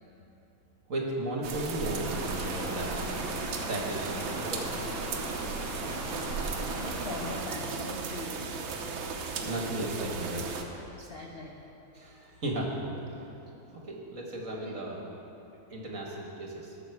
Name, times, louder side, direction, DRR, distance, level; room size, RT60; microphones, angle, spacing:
voice 1, 0.9-3.3 3.5-4.9 5.8-5.9 6.2-6.3 9.4-10.5 12.0-13.1 13.5-15.0 15.7-16.7, right 1 dB, 45° right, -1 dB, 1.7 m, -35 dB
sound 1, 1.4-10.6, right 4 dB, 80° right, 1.7 m, -36 dB
sound 2, 2.0-7.4, right 1 dB, 10° right, 0.8 m, -38 dB
voice 2, 5.5-6.3 6.7-8.7 9.1-9.2 11.0-11.6 14.5-14.7, left 2 dB, 50° left, -1 dB, 0.7 m, -42 dB
19.5 x 6.5 x 4.7 m, 3.0 s
omnidirectional pair, 2.1 m